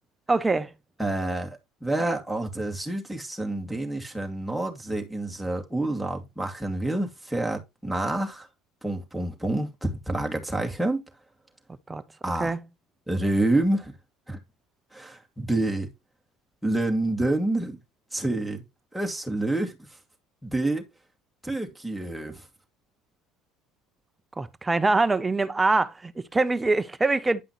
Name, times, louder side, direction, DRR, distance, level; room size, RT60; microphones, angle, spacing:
voice 1, 0.3-0.7 11.9-12.0 12.4-12.6 24.4-27.4, right 3 dB, 15° right, 0.8 m, -24 dB
voice 2, 1.0-8.5 8.8-11.0 12.2-12.5 13.1-13.9 14.3-14.4 14.9-15.9 16.6-17.8 18.1-18.6 18.9-19.7 20.4-20.8 21.4-22.5, right 2 dB, ahead, 2.6 m, -28 dB
10.5 x 5.6 x 3.2 m
hypercardioid pair, 80°, 0 cm